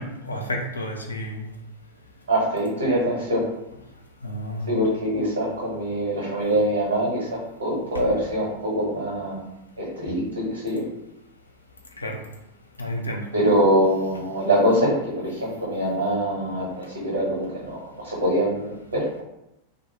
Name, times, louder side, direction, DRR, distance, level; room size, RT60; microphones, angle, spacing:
voice 1, 0.0-1.5 4.2-4.7 12.0-12.2 12.8-13.3, equal, 80° left, 1 dB, 0.4 m, -31 dB
voice 2, 2.3-3.4 4.7-7.3 7.6-9.4 9.8-10.8 13.3-19.0, right 1 dB, 70° right, -5 dB, 0.9 m, -24 dB
2.6 x 2.0 x 3.0 m, 0.90 s
figure-of-eight pair, 90°, 0 cm